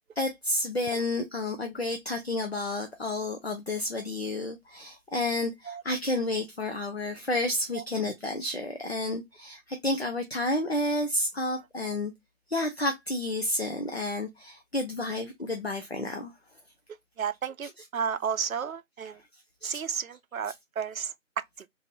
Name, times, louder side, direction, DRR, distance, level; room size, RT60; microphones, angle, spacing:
voice 1, 0.2-12.1 12.5-16.3 17.8-17.9 19.0-19.2 19.6-19.8 20.5-20.6, left 2 dB, 50° left, 0.7 m, -31 dB
voice 2, 17.2-19.2 19.6-21.1, right 7 dB, 85° right, 0.5 m, -32 dB
3.1 x 2.7 x 2.7 m
figure-of-eight pair, 175°, 41 cm